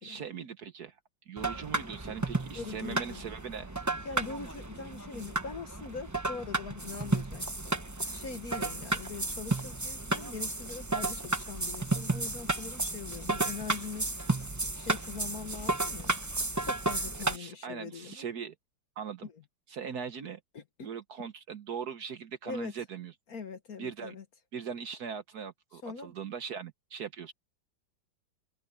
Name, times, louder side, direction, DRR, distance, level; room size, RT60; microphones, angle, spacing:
voice 1, 0.0-1.0 1.3-3.7 17.3-18.6 19.0-19.3 19.7-20.4 20.8-23.1 23.8-24.1 24.5-27.3, right 7 dB, 55° right, 1.3 m, -40 dB
sound 1, 1.4-17.4, right 2 dB, 15° right, 0.5 m, -33 dB
voice 2, 2.5-3.2 4.0-7.8 8.1-14.3 14.7-16.2 16.6-18.2 19.2-19.4 20.5-20.9 21.2-21.3 22.4-22.7 23.3-24.2 25.8-26.1, left 5 dB, 50° left, 1.6 m, -42 dB
open air
omnidirectional pair, 2.2 m